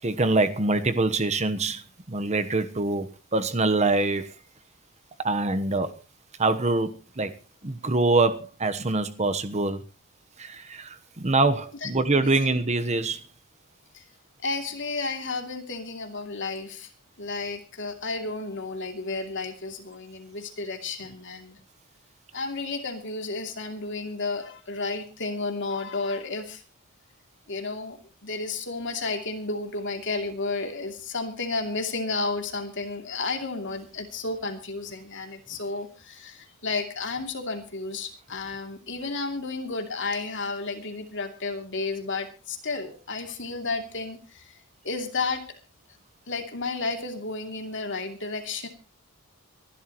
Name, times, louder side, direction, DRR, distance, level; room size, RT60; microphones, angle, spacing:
voice 1, 0.0-4.3 5.2-5.9 6.4-7.3 7.6-9.8 10.4-13.2, right 2 dB, 30° right, 1.1 m, -25 dB
voice 2, 11.8-12.5 13.9-14.0 14.4-16.9 17.2-21.6 22.3-26.6 27.5-45.5 46.3-48.7, left 3 dB, 55° left, 2.8 m, -32 dB
24.5 x 12.0 x 3.0 m
head